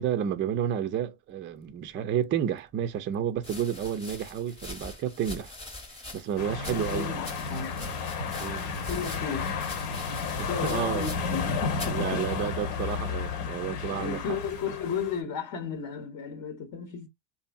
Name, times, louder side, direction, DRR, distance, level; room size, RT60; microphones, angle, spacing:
voice 1, 0.0-5.5 6.1-7.1 8.4-8.7 10.4-11.1 11.9-14.2, right 9 dB, 30° right, 0.4 m, -31 dB
sound 1, 2.3-2.4 3.4-11.5 11.7-12.1 12.8-13.2, left 2 dB, 15° left, 0.9 m, -43 dB
sound 2, 6.4-15.2, left 5 dB, 75° left, 1.0 m, -32 dB
voice 2, 6.6-7.8 8.9-9.9 10.4-12.4 13.8-17.1, left 6 dB, 45° left, 0.8 m, -34 dB
2.6 x 2.5 x 2.3 m
supercardioid pair, 90°, 45 cm